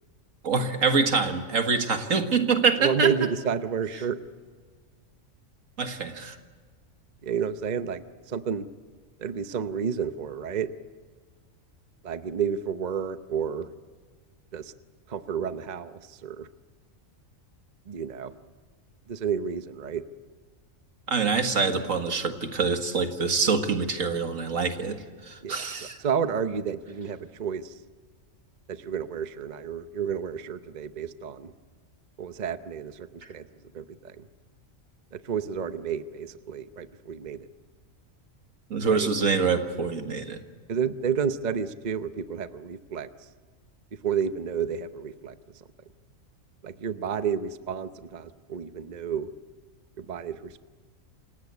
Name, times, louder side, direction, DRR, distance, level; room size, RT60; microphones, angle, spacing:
voice 1, 0.4-3.1 5.8-6.4 21.1-25.0 25.3-26.0 38.7-40.4, right 5 dB, 75° right, 6 dB, 2.1 m, -25 dB
voice 2, 2.8-4.2 7.2-8.7 9.2-10.7 12.0-13.7 14.5-14.7 15.1-16.5 17.9-18.3 19.1-20.0 25.4-27.8 28.7-31.5 32.2-33.5 33.7-34.2 35.1-37.5 38.9-39.1 40.7-43.1 44.0-45.3 46.6-49.3 50.0-50.6, right 7 dB, 40° right, 11 dB, 0.8 m, -31 dB
27.5 x 17.5 x 8.3 m, 1.5 s
omnidirectional pair, 1.4 m